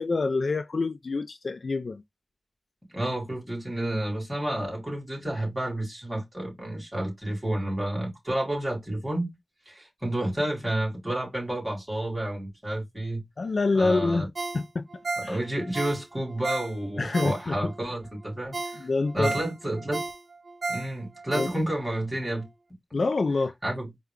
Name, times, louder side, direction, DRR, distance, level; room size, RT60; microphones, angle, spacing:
voice 1, 0.0-2.0 13.4-14.9 15.2-15.4 17.0-17.7 18.8-19.4 21.3-21.5 22.9-23.5, left 3 dB, 55° left, 0.3 m, -26 dB
voice 2, 2.9-9.3 9.7-13.2 13.7-14.3 15.2-18.9 19.1-20.0 20.7-22.5 23.6-23.9, right 1 dB, 10° right, 2.9 m, -30 dB
Ringtone, 14.3-17.8 18.2-18.3 18.5-22.0 22.4-22.5, right 3 dB, 65° right, 1.0 m, -34 dB
4.6 x 2.2 x 3.5 m
wide cardioid pair, 90°, 0 cm